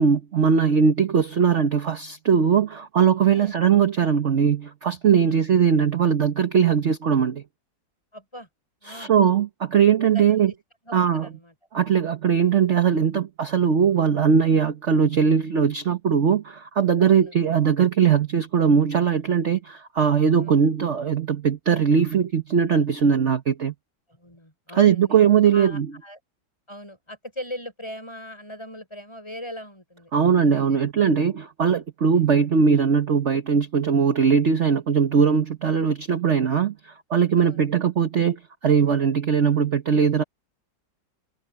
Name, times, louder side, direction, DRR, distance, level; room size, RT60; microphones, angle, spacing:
voice 1, 0.0-7.4 8.9-10.5 10.9-11.3 11.7-23.7 24.7-25.9 30.1-40.2, right 7 dB, 45° right, 1.3 m, -20 dB
voice 2, 8.1-8.5 8.8-9.1 10.1-10.5 10.8-11.5 17.0-17.3 20.4-20.6 24.1-25.2 25.5-26.2 26.7-30.8 32.1-32.3 37.4-37.7, equal, 15° left, 6.9 m, -40 dB
omnidirectional pair, 1.8 m